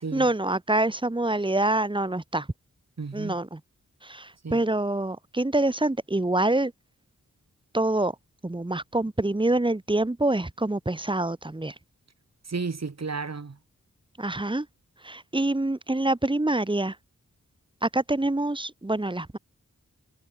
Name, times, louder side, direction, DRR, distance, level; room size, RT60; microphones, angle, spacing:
voice 1, 0.0-2.5 3.1-3.6 4.0-6.7 7.7-8.1 8.4-11.7 14.2-14.7 15.0-17.0 17.8-19.4, right 2 dB, 15° right, 1.3 m, -26 dB
voice 2, 3.0-3.4 4.4-4.6 12.4-13.6, right 4 dB, 55° right, 2.8 m, -33 dB
wide cardioid pair, 90°, 32 cm